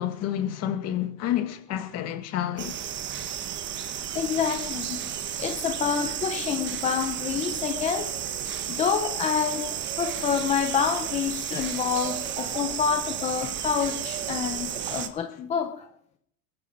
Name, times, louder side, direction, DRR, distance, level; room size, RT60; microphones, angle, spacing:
voice 1, 0.0-2.8 3.2-3.3 8.5-8.6 11.5-11.8, left 11 dB, 30° left, 2.0 m, -30 dB
sound 1, 2.6-15.1, right 9 dB, 25° right, 1.2 m, -32 dB
voice 2, 4.1-5.0 5.4-8.4 8.7-9.7 10.0-15.9, left 7 dB, 15° left, 0.6 m, -28 dB
22.0 x 11.5 x 5.2 m
supercardioid pair, 170°, 48 cm